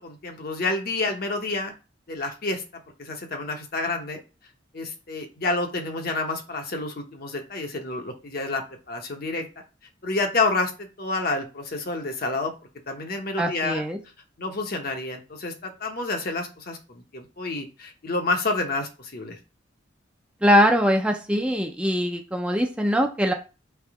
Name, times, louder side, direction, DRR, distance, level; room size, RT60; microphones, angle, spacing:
voice 1, 0.0-1.7 2.1-2.6 3.0-4.2 4.7-9.5 10.0-12.5 12.9-13.8 14.4-19.4, left 3 dB, 50° left, 3 dB, 0.9 m, -29 dB
voice 2, 13.4-14.0 20.4-23.3, equal, 5° right, 3 dB, 0.4 m, -22 dB
3.5 x 3.2 x 4.7 m, 0.32 s
head